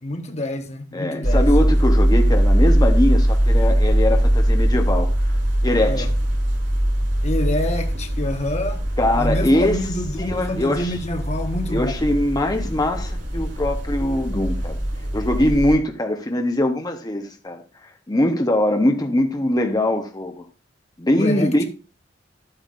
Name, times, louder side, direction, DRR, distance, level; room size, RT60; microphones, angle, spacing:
voice 1, 0.0-1.5 5.8-6.1 7.2-8.8 9.2-12.1 21.1-21.6, left 1 dB, 40° left, 1.2 m, -27 dB
voice 2, 0.9-5.4 5.6-6.1 9.0-9.8 10.2-11.0 11.7-14.8 15.1-20.4 21.0-21.6, left 1 dB, 20° left, 0.9 m, -22 dB
sound 1, 1.2-15.8, equal, 85° right, 4.0 m, -20 dB
11.0 x 9.0 x 2.5 m
head